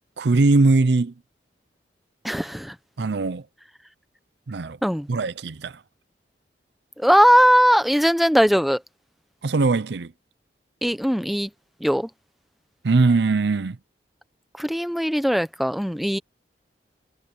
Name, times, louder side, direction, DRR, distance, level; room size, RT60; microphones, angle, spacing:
voice 1, 0.2-1.1 3.0-3.4 4.5-4.8 5.1-5.8 9.4-10.1 12.8-13.8, right 3 dB, 70° right, 0.6 m, -20 dB
voice 2, 2.2-2.7 4.8-5.1 7.0-8.8 10.8-11.5 11.8-12.1 14.6-16.2, equal, ahead, 1.0 m, -19 dB
head